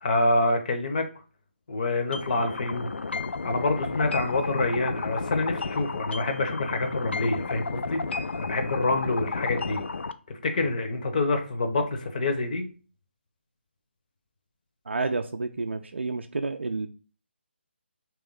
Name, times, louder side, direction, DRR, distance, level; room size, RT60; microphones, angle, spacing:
voice 1, 0.0-1.0 1.7-2.9 3.4-9.8 10.3-12.7, left 2 dB, 40° left, 6 dB, 0.7 m, -27 dB
sound 1, 2.1-10.1, left 4 dB, 70° left, 0.3 m, -32 dB
voice 2, 14.9-16.9, right 3 dB, 75° right, 6 dB, 0.4 m, -30 dB
3.3 x 3.0 x 3.7 m, 0.37 s
figure-of-eight pair, 150°, 6 cm